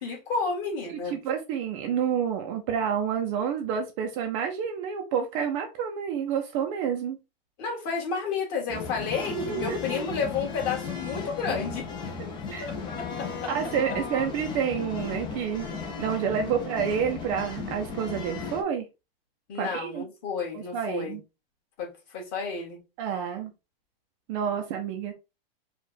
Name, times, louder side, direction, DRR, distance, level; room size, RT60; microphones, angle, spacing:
voice 1, 0.0-1.2 7.6-11.9 12.6-13.5 19.5-21.2 21.8-22.8, left 5 dB, 35° left, 2.2 m, -31 dB
voice 2, 0.9-7.2 9.3-10.1 12.5-12.7 13.5-15.7 16.0-18.9 19.6-20.0 20.5-21.2 23.0-23.5 24.3-25.1, right 7 dB, 35° right, 0.7 m, -29 dB
sound 1, 8.7-18.6, left 5 dB, 15° left, 0.7 m, -36 dB
4.9 x 2.5 x 4.0 m
supercardioid pair, 160°, 30 cm